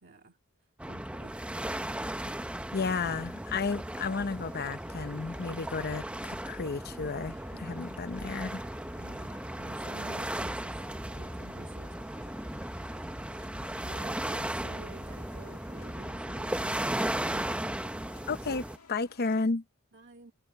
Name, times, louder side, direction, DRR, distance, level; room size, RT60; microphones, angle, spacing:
voice 1, 0.0-0.4 0.8-1.4 9.0-10.8 11.1-12.0 13.8-17.6 19.9-20.3, right 2 dB, 50° right, 2.1 m, -51 dB
sound 1, 0.8-18.8, right 1 dB, 5° right, 0.7 m, -36 dB
Water, 2.1-19.3, right 8 dB, 85° right, 5.5 m, -66 dB
voice 2, 2.7-8.6 18.3-19.6, left 4 dB, 45° left, 0.8 m, -33 dB
sound 2, 4.0-19.4, left 4 dB, 85° left, 1.8 m, -57 dB
head